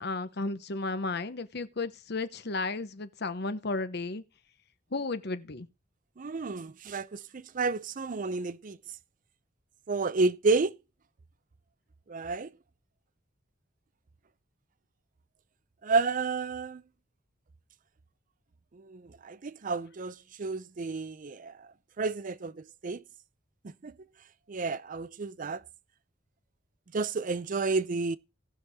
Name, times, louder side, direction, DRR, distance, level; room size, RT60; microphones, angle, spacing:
voice 1, 0.0-4.2 4.9-5.7, left 3 dB, 60° left, 1.0 m, -33 dB
voice 2, 6.2-8.8 9.9-10.8 12.1-12.5 15.8-16.8 18.7-21.7 22.0-23.0 23.6-23.9 24.5-25.6 26.9-28.2, right 3 dB, 45° right, 0.5 m, -31 dB
17.5 x 6.3 x 3.5 m
head